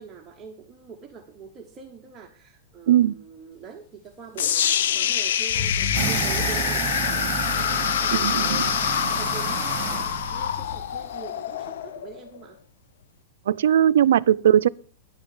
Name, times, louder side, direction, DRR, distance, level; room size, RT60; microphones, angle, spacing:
voice 1, 0.0-12.6, right 5 dB, 20° right, 1.1 m, -44 dB
sound 1, 4.4-12.4, left 10 dB, 75° left, 0.6 m, -26 dB
Car / Engine starting / Accelerating revving vroom, 4.8-11.3, left 5 dB, 40° left, 1.1 m, -35 dB
sound 2, 5.9-10.7, right 10 dB, 35° right, 1.9 m, -31 dB
voice 2, 8.1-8.6 13.5-14.7, right 10 dB, 80° right, 0.4 m, -19 dB
10.5 x 7.1 x 7.0 m
supercardioid pair, 155°, 0 cm